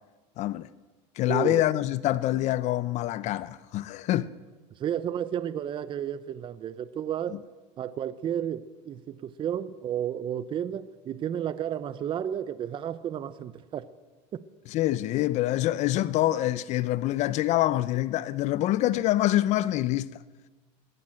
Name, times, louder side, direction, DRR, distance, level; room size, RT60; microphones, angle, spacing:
voice 1, 0.4-0.7 1.2-4.3 14.7-20.1, left 14 dB, 50° left, 0.7 m, -26 dB
voice 2, 1.3-1.6 4.8-7.4 7.8-13.9 14.3-14.4, right 9 dB, 35° right, 0.8 m, -32 dB
21.5 x 18.0 x 7.7 m
supercardioid pair, 130°, 15 cm